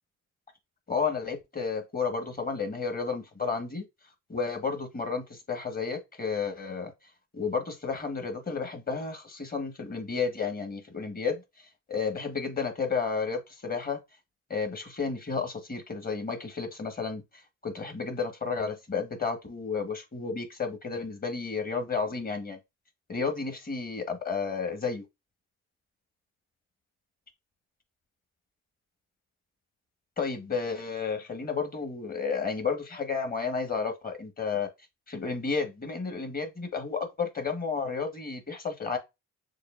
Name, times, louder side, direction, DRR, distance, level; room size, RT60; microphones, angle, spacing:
voice 1, 0.9-3.8 4.3-6.9 7.3-14.0 14.5-22.6 23.1-25.0 30.2-34.7 35.1-39.0, left 5 dB, 30° left, 1.4 m, -32 dB
6.3 x 2.4 x 2.5 m
cardioid pair, 90°, 30 cm